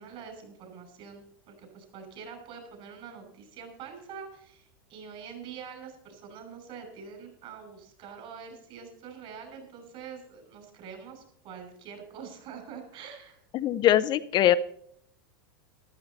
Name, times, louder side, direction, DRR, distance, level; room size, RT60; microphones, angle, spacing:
voice 1, 0.0-13.4, right 6 dB, 50° right, 6 dB, 6.1 m, -45 dB
voice 2, 13.5-14.5, left 12 dB, 40° left, 12 dB, 0.7 m, -22 dB
14.0 x 12.0 x 4.1 m, 0.66 s
hypercardioid pair, 100°, 12 cm